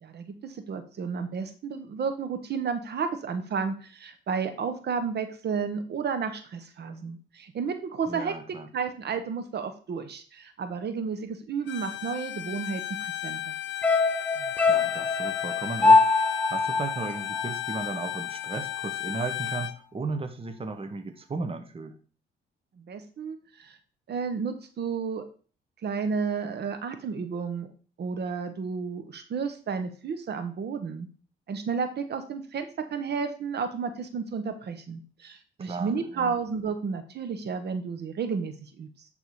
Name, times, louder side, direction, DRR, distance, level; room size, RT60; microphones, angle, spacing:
voice 1, 0.0-8.3 8.7-13.6 22.8-23.8 24.1-25.2 25.8-27.7 28.0-31.1 31.5-39.1, right 5 dB, 55° right, 8 dB, 1.1 m, -32 dB
voice 2, 8.1-8.7 14.3-22.0 35.6-36.4, right 3 dB, 30° right, 7 dB, 1.1 m, -35 dB
Bowed string instrument, 11.7-19.8, left 14 dB, 70° left, 0.7 m, -34 dB
sound 1, 13.8-18.2 18.5-18.6, left 3 dB, 5° left, 0.8 m, -23 dB
11.0 x 3.8 x 4.8 m, 0.39 s
cardioid pair, 90°, 20 cm